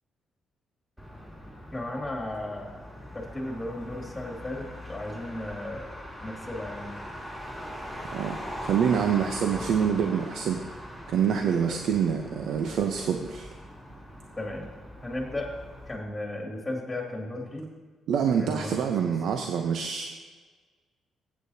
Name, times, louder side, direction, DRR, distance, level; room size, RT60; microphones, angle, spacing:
Motor vehicle (road), 1.0-15.9, equal, 10° right, 3.0 m, -41 dB
voice 1, 1.7-2.7 3.1-5.9 6.2-7.0 14.4-14.7 15.0-15.5 15.9-17.6 18.4-18.7, left 1 dB, 15° left, 0 dB, 2.2 m, -35 dB
voice 2, 8.6-10.6 11.1-13.5 18.1-20.1, right 7 dB, 75° right, 4 dB, 0.6 m, -26 dB
14.5 x 8.3 x 2.8 m, 1.4 s
cardioid pair, 90°, 0 cm